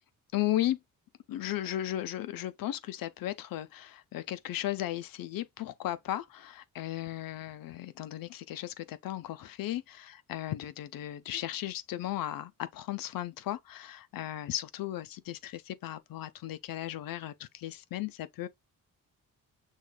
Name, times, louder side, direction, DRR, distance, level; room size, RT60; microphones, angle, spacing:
voice 1, 0.3-0.8 1.3-18.5, left 13 dB, 80° left, 0.6 m, -35 dB
6.5 x 3.1 x 2.2 m
wide cardioid pair, 175°, 34 cm